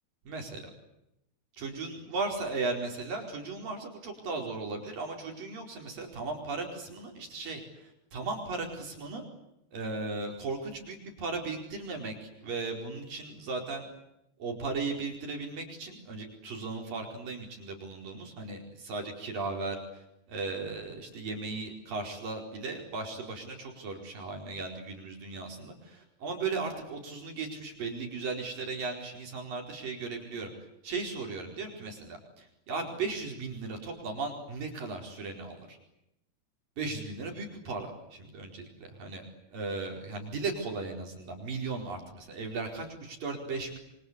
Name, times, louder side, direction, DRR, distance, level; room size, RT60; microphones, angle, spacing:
voice 1, 0.3-0.7 1.6-9.2 9.7-13.9 14.4-30.5 30.8-35.8 36.8-38.5 38.9-39.3 39.5-43.8, right 3 dB, 55° right, 2 dB, 6.2 m, -36 dB
28.5 x 25.0 x 8.2 m, 0.84 s
omnidirectional pair, 4.8 m